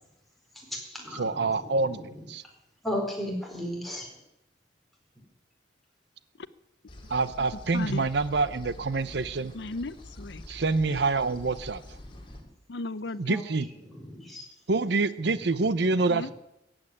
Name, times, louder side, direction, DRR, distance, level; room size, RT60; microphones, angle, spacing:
voice 1, 0.5-2.3 2.8-4.2 12.0-12.5 13.3-13.4 13.8-14.5 15.2-15.9, equal, ahead, -1 dB, 4.4 m, -37 dB
voice 2, 1.1-2.4 7.1-9.5 10.5-12.0 13.2-13.7 14.7-16.3, right 3 dB, 65° right, 15 dB, 0.7 m, -27 dB
sound 1, 6.9-12.4, left 1 dB, 30° left, 2.8 m, -46 dB
voice 3, 7.7-8.0 9.5-10.4 10.9-11.0 12.7-13.4 16.1-16.3, left 2 dB, 65° left, 16 dB, 0.7 m, -35 dB
15.5 x 8.9 x 9.9 m, 0.85 s
head